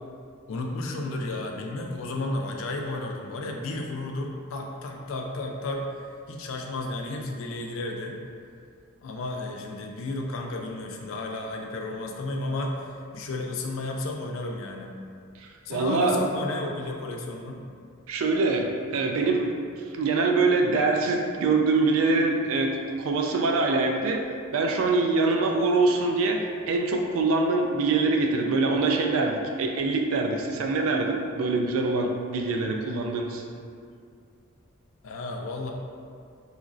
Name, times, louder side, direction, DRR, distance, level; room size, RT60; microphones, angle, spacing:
voice 1, 0.5-5.9 6.3-8.2 9.0-12.9 13.1-15.0 15.7-17.6 35.0-35.7, left 2 dB, 70° left, 1 dB, 0.3 m, -32 dB
voice 2, 15.7-16.2 18.1-19.5 19.9-24.2 24.5-33.4, right 3 dB, 75° right, 2 dB, 0.3 m, -24 dB
3.0 x 2.4 x 2.4 m, 2.3 s
head